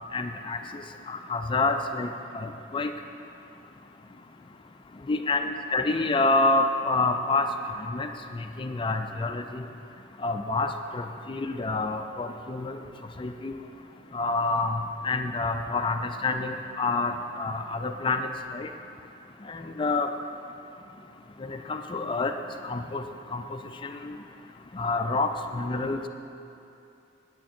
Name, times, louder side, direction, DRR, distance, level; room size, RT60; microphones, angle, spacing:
voice 1, 0.1-0.8 1.1-2.1 2.3-2.9 5.1-7.5 7.9-8.1 8.3-9.7 10.2-12.8 13.2-13.5 14.1-18.7 19.5-20.1 21.5-22.3 22.6-23.0 23.3-24.2 24.7-26.1, left 3 dB, 25° left, 6 dB, 0.4 m, -28 dB
8.9 x 8.1 x 4.4 m, 2.7 s
head